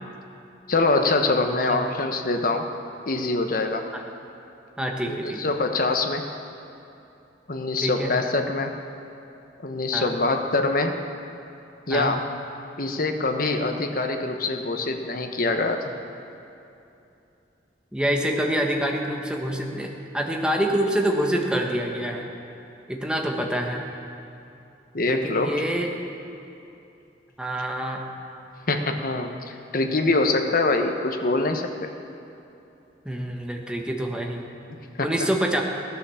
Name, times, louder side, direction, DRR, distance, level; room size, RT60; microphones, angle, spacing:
voice 1, 0.7-2.6 3.1-3.8 5.1-6.2 7.5-8.7 9.6-11.0 11.9-12.3 12.8-15.9 24.9-25.5 28.7-31.7 34.7-35.3, left 3 dB, 55° left, 5 dB, 1.1 m, -24 dB
voice 2, 4.8-5.4 7.8-8.1 9.9-10.2 11.9-12.1 17.9-22.3 22.9-23.8 25.1-25.9 27.4-28.0 33.0-34.5 35.0-35.6, right 1 dB, 5° right, 0 dB, 1.4 m, -26 dB
16.5 x 10.5 x 7.1 m, 2.8 s
head